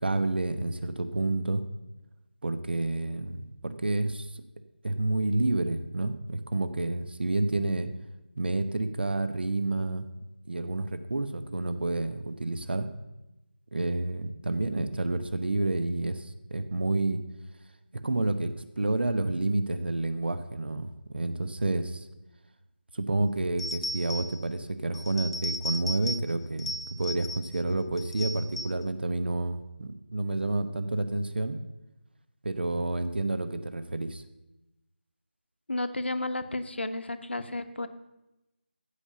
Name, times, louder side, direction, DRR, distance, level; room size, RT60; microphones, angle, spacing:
voice 1, 0.0-1.6 2.4-4.4 4.8-7.9 8.4-10.1 10.5-12.9 13.7-17.2 18.0-22.1 22.9-31.6 32.4-34.2, right 2 dB, 60° right, 11 dB, 1.1 m, -29 dB
sound 1, 23.6-24.4 24.9-26.3 26.6-27.6 28.0-28.8, left 1 dB, 30° left, 0.4 m, -36 dB
voice 2, 35.7-37.9, left 2 dB, 75° left, 9 dB, 1.0 m, -32 dB
15.0 x 5.1 x 6.9 m, 0.96 s
figure-of-eight pair, 165°, 6 cm